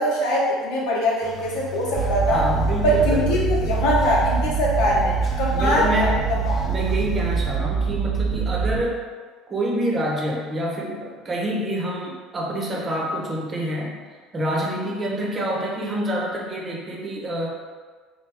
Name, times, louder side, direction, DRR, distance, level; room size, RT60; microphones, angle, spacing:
voice 1, 0.0-2.4 2.8-6.6, equal, 70° left, -4 dB, 0.9 m, -22 dB
sound 1, 1.2-7.6, left 10 dB, 35° left, 0.6 m, -35 dB
sound 2, 2.0-8.8, right 6 dB, 55° right, 0.4 m, -24 dB
voice 2, 2.3-3.7 5.5-6.2 6.7-9.0 9.5-14.0 14.3-17.5, right 1 dB, 35° right, -2 dB, 0.9 m, -27 dB
3.3 x 2.3 x 3.4 m, 1.5 s
hypercardioid pair, 70°, 0 cm